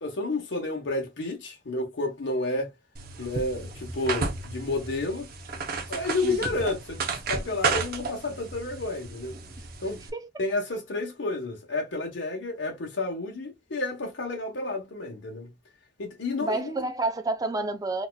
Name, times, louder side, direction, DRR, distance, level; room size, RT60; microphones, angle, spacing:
voice 1, 0.0-2.7 3.2-5.3 5.9-9.4 9.8-10.0 10.4-15.5 16.0-16.8, left 2 dB, 85° left, 1.0 m, -31 dB
sound 1, 3.0-10.1, right 4 dB, 55° right, 0.7 m, -33 dB
voice 2, 6.2-6.6 9.6-9.7 10.1-10.3 16.4-18.1, right 2 dB, 20° right, 0.5 m, -30 dB
4.0 x 2.4 x 2.3 m
head